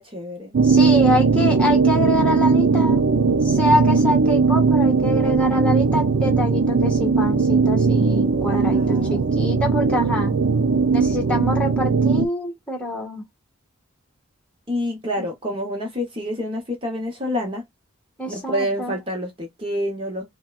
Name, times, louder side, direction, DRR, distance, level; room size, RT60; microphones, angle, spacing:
voice 1, 0.0-0.5 8.5-9.3 14.7-17.6 18.3-20.3, equal, 25° right, 1.0 m, -28 dB
sound 1, 0.5-12.3, right 4 dB, 55° right, 0.4 m, -18 dB
voice 2, 0.6-3.0 3.4-10.3 10.9-13.2 18.2-18.9, left 1 dB, 5° left, 1.4 m, -25 dB
5.5 x 2.2 x 2.4 m
head